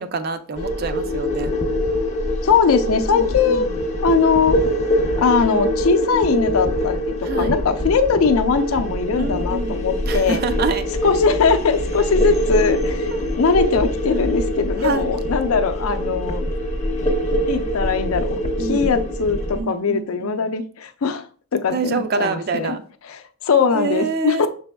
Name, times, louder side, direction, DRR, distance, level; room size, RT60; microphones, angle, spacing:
voice 1, 0.0-1.5 3.1-3.7 7.2-7.6 9.2-9.8 10.1-10.8 13.1-13.2 14.8-15.1 18.6-19.0 19.5-20.5 21.7-22.8 23.7-24.5, right 4 dB, 45° right, 0.4 m, -26 dB
sound 1, 0.6-19.6, equal, 30° left, 0.5 m, -23 dB
voice 2, 2.4-3.7 4.0-4.6 5.2-10.4 11.0-16.5 17.5-21.2 21.5-22.8 23.0-24.5, left 5 dB, 80° left, 0.5 m, -20 dB
6.1 x 3.4 x 2.2 m
head